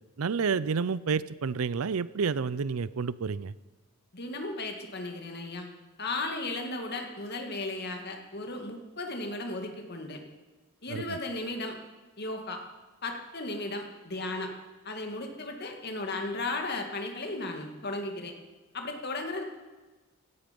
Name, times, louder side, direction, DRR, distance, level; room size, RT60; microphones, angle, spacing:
voice 1, 0.2-3.5 10.9-11.2, right 5 dB, 80° right, 18 dB, 0.5 m, -29 dB
voice 2, 4.1-5.7 6.0-10.2 10.8-11.8 12.2-12.6 13.0-14.5 14.8-18.3 18.7-19.4, left 2 dB, 50° left, 4 dB, 2.2 m, -35 dB
16.5 x 14.5 x 5.4 m, 1.2 s
head